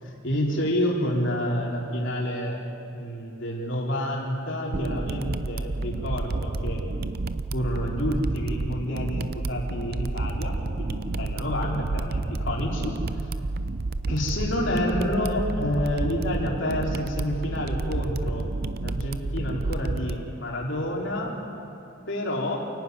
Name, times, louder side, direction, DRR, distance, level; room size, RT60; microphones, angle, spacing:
voice 1, 0.2-2.6 2.9-6.8 7.5-12.9 14.1-18.5 18.8-21.3 22.1-22.6, left 1 dB, 60° left, -3 dB, 3.7 m, -29 dB
sound 1, 4.7-20.2, right 2 dB, 50° right, 0.6 m, -30 dB
28.0 x 11.5 x 9.5 m, 2.7 s
head